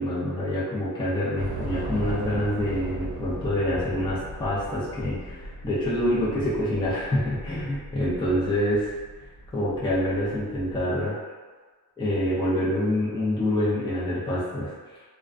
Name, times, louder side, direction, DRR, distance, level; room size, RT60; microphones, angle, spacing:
voice 1, 0.0-9.0 9.5-11.1 12.0-14.7, left 1 dB, 15° left, -8 dB, 0.4 m, -26 dB
Train / Subway metro underground, 1.4-10.8, right 1 dB, 80° right, 0.6 m, -38 dB
2.4 x 2.1 x 2.4 m, 1.4 s
wide cardioid pair, 155°, 37 cm